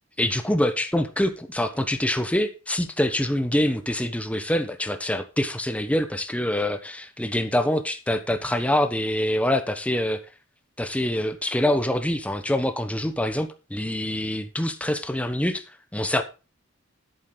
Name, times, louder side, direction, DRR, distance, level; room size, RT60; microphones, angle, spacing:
voice 1, 0.2-10.2 10.8-16.2, left 1 dB, 5° left, 8 dB, 1.1 m, -25 dB
11.0 x 8.7 x 3.9 m, 0.31 s
head